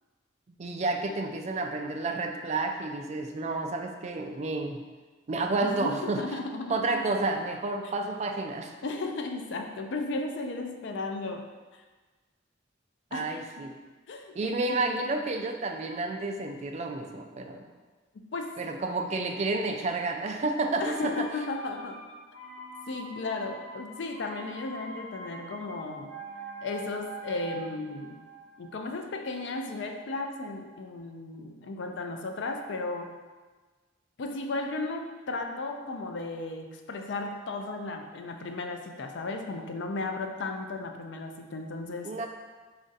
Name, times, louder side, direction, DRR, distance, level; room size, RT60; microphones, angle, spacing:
voice 1, 0.6-4.8 5.3-6.2 6.7-8.8 13.1-13.7 14.4-17.7 18.6-21.3 42.0-42.3, right 3 dB, 35° right, 4 dB, 0.3 m, -30 dB
voice 2, 5.6-7.0 8.8-11.5 13.1-13.7 14.1-15.0 18.1-18.6 20.8-22.0 22.9-26.1 26.6-28.2 28.6-33.2 34.2-42.2, left 3 dB, 65° left, 4 dB, 0.4 m, -35 dB
sound 1, 20.7-30.5 30.8-30.9, right 3 dB, 65° right, 0.8 m, -45 dB
4.3 x 2.5 x 3.9 m, 1.3 s
head